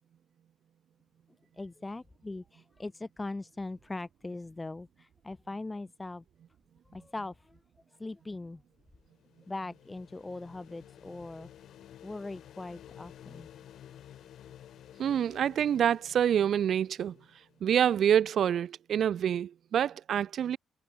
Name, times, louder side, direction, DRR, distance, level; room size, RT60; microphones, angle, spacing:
voice 1, 1.6-6.2 6.9-7.6 8.0-8.6 9.5-11.5 12.0-13.5, left 2 dB, 20° left, 4.8 m, -40 dB
sound 1, 8.9-17.6, left 11 dB, 70° left, 5.1 m, -53 dB
voice 2, 15.0-17.2 17.6-20.6, right 9 dB, 65° right, 0.8 m, -27 dB
cardioid pair, 90°, 0 cm